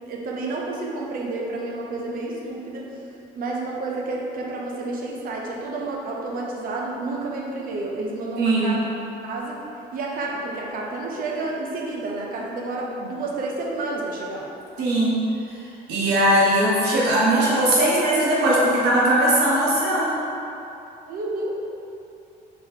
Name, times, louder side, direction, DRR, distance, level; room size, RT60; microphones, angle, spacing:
voice 1, 0.1-2.9 3.3-8.9 9.2-9.6 9.9-14.5 17.3-17.5 17.8-18.5 21.1-21.5, right 2 dB, 60° right, -1 dB, 0.7 m, -30 dB
voice 2, 8.4-8.8 14.8-15.2 15.9-20.1, right 1 dB, 80° right, -6 dB, 1.1 m, -19 dB
4.0 x 3.0 x 3.6 m, 2.8 s
cardioid pair, 110°, 17 cm